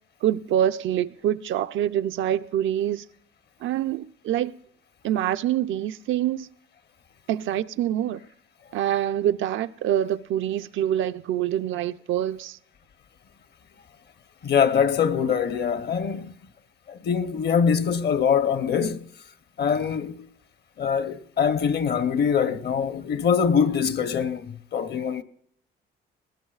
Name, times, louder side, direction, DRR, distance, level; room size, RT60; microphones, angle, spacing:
voice 1, 0.2-3.1 3.6-4.5 5.0-6.5 7.3-8.2 8.7-12.6, right 11 dB, 75° right, 0.5 m, -25 dB
voice 2, 14.4-16.3 16.9-19.0 19.6-20.3 20.8-25.2, left 7 dB, 55° left, 0.9 m, -23 dB
20.0 x 19.0 x 2.4 m
cardioid pair, 90°, 20 cm